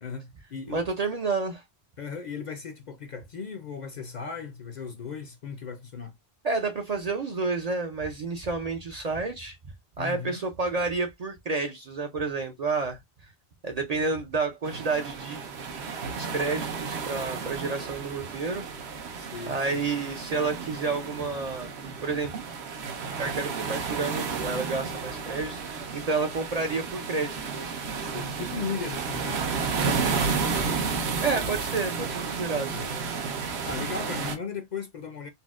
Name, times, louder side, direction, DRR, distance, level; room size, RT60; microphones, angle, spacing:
voice 1, 0.0-0.8 2.0-6.1 10.0-10.4 19.2-19.8 28.0-29.4 32.5-32.9 33.6-35.3, left 5 dB, 55° left, 0.6 m, -37 dB
voice 2, 0.7-1.6 6.4-9.6 10.0-13.0 13.6-15.4 16.2-18.7 19.5-21.7 22.0-22.3 23.2-27.8 31.2-33.0, right 4 dB, 50° right, 0.5 m, -30 dB
sound 1, 14.6-34.4, right 5 dB, 80° right, 1.0 m, -32 dB
4.1 x 2.0 x 2.4 m
omnidirectional pair, 1.1 m